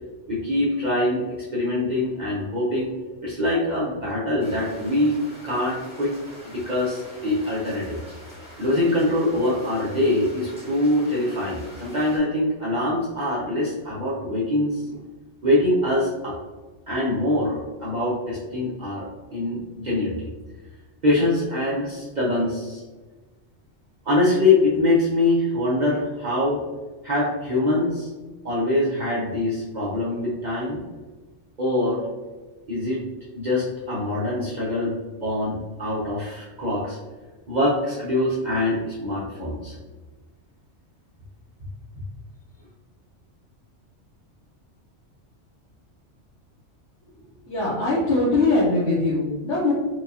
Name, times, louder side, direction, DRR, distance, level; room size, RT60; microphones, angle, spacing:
voice 1, 0.3-1.3 1.5-2.9 3.2-5.2 5.4-6.2 6.5-8.0 8.6-15.0 15.4-16.4 16.9-20.3 21.0-22.8 24.0-26.6 27.0-28.1 28.4-30.8 31.6-32.0 32.7-33.0 33.3-35.0 35.2-37.0 37.5-39.8, left 1 dB, 45° right, -7 dB, 0.7 m, -24 dB
sound 1, 4.4-12.2, left 1 dB, 5° right, 1.2 m, -44 dB
voice 2, 47.5-49.7, left 2 dB, 80° left, -7 dB, 1.1 m, -21 dB
4.6 x 2.3 x 2.7 m, 1.3 s
omnidirectional pair, 1.2 m